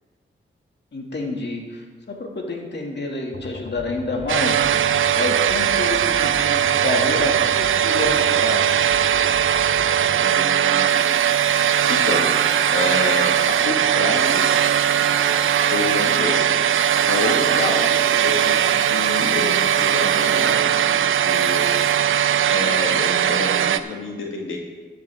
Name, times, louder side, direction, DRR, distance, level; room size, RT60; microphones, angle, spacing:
voice 1, 0.9-4.6 5.1-8.7, left 2 dB, 60° left, 0 dB, 2.3 m, -28 dB
sound 1, 3.3-10.2, left 3 dB, 40° left, 0.8 m, -37 dB
sound 2, 4.3-23.8, right 9 dB, 80° right, 0.5 m, -19 dB
voice 2, 10.2-12.4 12.7-14.5 15.4-16.5 17.1-24.6, left 3 dB, 75° left, 0 dB, 1.9 m, -29 dB
sound 3, 10.9-21.9, right 1 dB, 5° right, 2.5 m, -38 dB
13.5 x 10.0 x 3.6 m, 1.4 s
cardioid pair, 60°, 21 cm